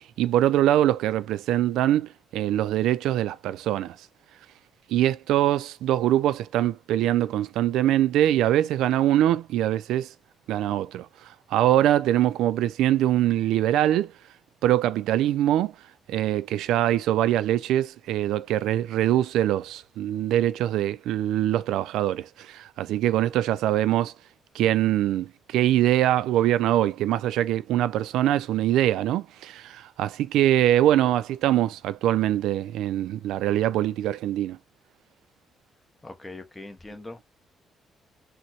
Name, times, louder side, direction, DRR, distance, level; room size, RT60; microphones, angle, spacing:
voice 1, 0.2-4.0 4.9-10.1 10.5-11.1 11.5-14.1 14.6-15.7 16.1-24.1 24.5-34.6, right 12 dB, 90° right, 0.3 m, -23 dB
voice 2, 36.0-37.2, left 2 dB, 15° left, 0.9 m, -41 dB
3.9 x 2.1 x 2.9 m
cardioid pair, 90°, 0 cm